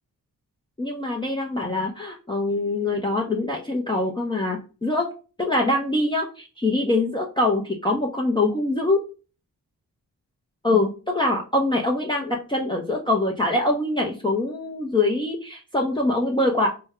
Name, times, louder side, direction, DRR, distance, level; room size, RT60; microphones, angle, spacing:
voice 1, 0.8-5.1 5.4-9.0 10.6-16.7, left 2 dB, 15° left, -1 dB, 0.7 m, -24 dB
4.3 x 2.2 x 3.6 m, 0.34 s
cardioid pair, 75°, 34 cm